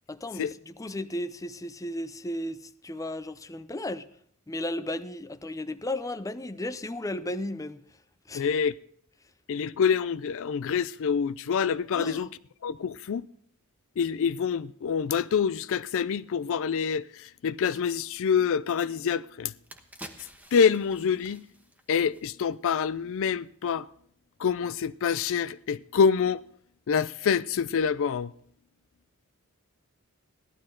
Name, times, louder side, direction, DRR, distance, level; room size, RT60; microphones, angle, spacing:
voice 1, 0.1-4.1 4.5-7.8 8.3-8.5 11.9-12.3, left 1 dB, 15° left, 0.6 m, -34 dB
voice 2, 8.3-8.7 9.5-12.3 12.6-13.3 14.0-19.5 20.5-21.4 21.9-23.9 24.4-26.4 26.9-28.3, left 6 dB, 65° left, 0.4 m, -26 dB
sound 1, 19.0-19.1 19.5-22.7 23.1-23.2, right 1 dB, 10° right, 1.1 m, -49 dB
16.0 x 12.0 x 3.8 m
head